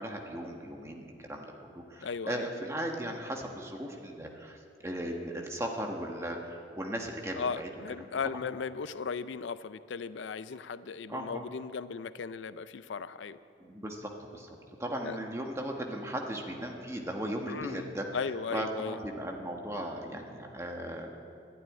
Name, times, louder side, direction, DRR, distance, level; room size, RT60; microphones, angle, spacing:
voice 1, 0.0-7.7 8.0-8.1 11.1-11.4 13.6-14.5 14.8-21.2, right 1 dB, 15° right, 2 dB, 1.3 m, -37 dB
voice 2, 2.0-2.5 7.4-13.4 15.0-15.2 17.5-17.9 18.1-19.0, left 5 dB, 85° left, 15 dB, 0.5 m, -36 dB
11.5 x 11.0 x 9.8 m, 2.6 s
head